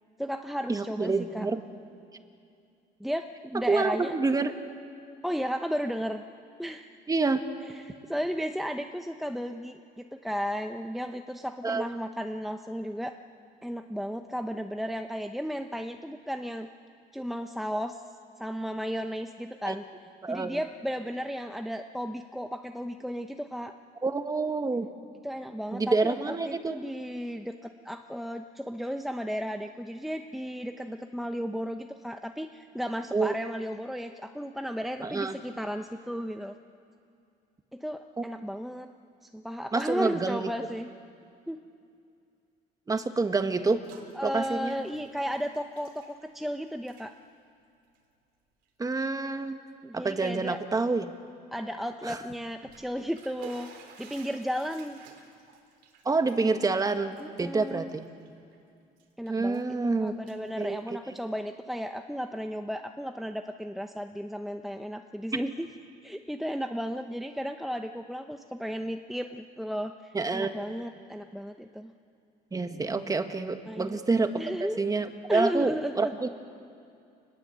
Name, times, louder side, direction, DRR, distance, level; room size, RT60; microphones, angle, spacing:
voice 1, 0.2-1.5 3.0-4.2 5.2-6.2 6.6-6.9 7.7-13.1 13.6-16.7 17.1-18.0 18.4-19.8 20.3-23.7 25.2-36.5 37.7-38.9 39.2-40.9 41.5-41.6 44.1-47.1 49.8-50.6 51.5-53.7 54.0-55.0 57.2-57.9 59.2-65.7 66.0-71.9 73.7-74.0 74.3-74.8 75.3-76.1, equal, ahead, 6 dB, 0.9 m, -34 dB
voice 2, 0.7-1.6 3.7-4.5 7.1-7.4 11.6-11.8 19.6-19.8 20.2-20.6 24.0-24.9 25.7-26.8 33.1-33.3 35.0-35.4 38.2-38.3 39.7-40.5 42.9-43.8 44.2-44.8 48.8-49.6 49.9-51.1 52.0-52.2 56.1-58.1 59.3-60.1 60.6-60.8 65.3-65.4 70.1-70.5 72.5-74.4 74.8-76.3, right 3 dB, 20° right, 7 dB, 1.6 m, -27 dB
Bathtub (filling or washing), 43.7-44.1 44.4-46.5 46.8-47.1 47.8-48.0 48.6-48.7 49.2-49.3 52.4-58.6 59.0-59.7 60.1-61.4, right 7 dB, 85° right, 3.6 m, -53 dB
26.5 x 20.5 x 8.0 m, 2.5 s
cardioid pair, 110°, 17 cm